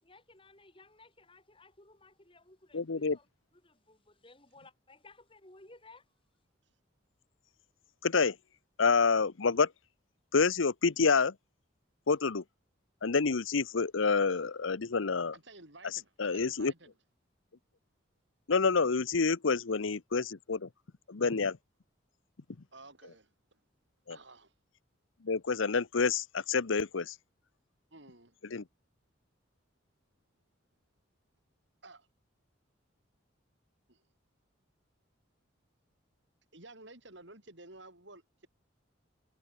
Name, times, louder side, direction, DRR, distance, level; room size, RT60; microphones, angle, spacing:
voice 1, 0.0-3.3 3.5-6.1, left 2 dB, 25° left, 5.0 m, -58 dB
voice 2, 2.7-3.2 8.0-8.3 8.8-9.7 10.3-11.3 12.1-12.4 13.0-15.3 16.2-16.7 18.5-20.7 21.1-21.6 24.1-24.2 25.2-27.1 28.5-28.6, left 4 dB, 80° left, 0.8 m, -28 dB
voice 3, 15.3-16.9 22.7-23.6 24.1-24.5 27.9-28.4 31.8-32.1 33.9-34.0 36.5-38.5, right 2 dB, 65° right, 7.1 m, -53 dB
head